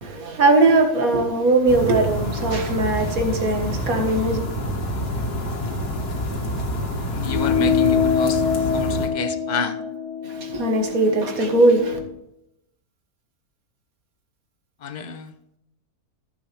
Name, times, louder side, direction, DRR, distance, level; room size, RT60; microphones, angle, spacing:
voice 1, 0.0-4.4 10.2-12.0, right 2 dB, 65° right, 2.0 m, -20 dB
sound 1, 1.7-9.1, equal, 90° left, 2.3 m, -27 dB
voice 2, 7.0-8.4 8.7-9.8 14.8-15.3, left 5 dB, 55° left, 0.5 m, -29 dB
sound 2, 7.3-12.1, left 7 dB, 70° left, 1.7 m, -24 dB
14.5 x 7.2 x 3.4 m
omnidirectional pair, 1.6 m